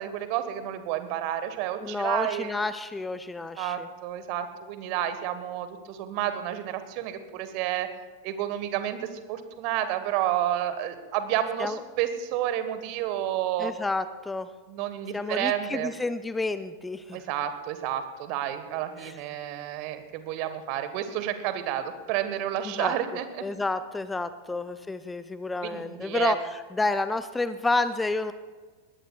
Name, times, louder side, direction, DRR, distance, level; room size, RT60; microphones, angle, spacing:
voice 1, 0.0-2.6 3.6-7.9 8.2-13.7 14.7-15.9 17.1-23.4 24.5-24.6 25.6-26.3, right 11 dB, 45° right, 10 dB, 1.4 m, -30 dB
voice 2, 1.8-3.9 11.6-11.8 13.6-14.5 15.1-17.2 19.0-19.1 22.6-22.9 23.4-26.4 26.8-28.3, left 3 dB, 10° left, 13 dB, 0.5 m, -30 dB
21.5 x 19.5 x 2.4 m, 1.4 s
figure-of-eight pair, 90°, 0 cm